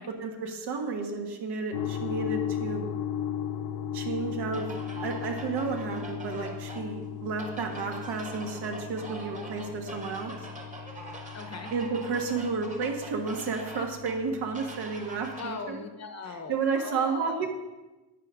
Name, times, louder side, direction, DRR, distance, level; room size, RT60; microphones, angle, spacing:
voice 1, 0.2-2.9 3.9-4.7 5.0-10.3 11.7-15.8 16.5-17.5, right 4 dB, 75° right, 3 dB, 1.6 m, -32 dB
sound 1, 1.7-15.4, left 9 dB, 65° left, 0.7 m, -37 dB
sound 2, 4.5-15.6, right 1 dB, 20° right, 1.2 m, -44 dB
voice 2, 11.3-11.7 15.4-17.5, left 4 dB, 40° left, 6 dB, 1.0 m, -39 dB
11.0 x 8.9 x 3.7 m, 1.1 s
cardioid pair, 150°, 40 cm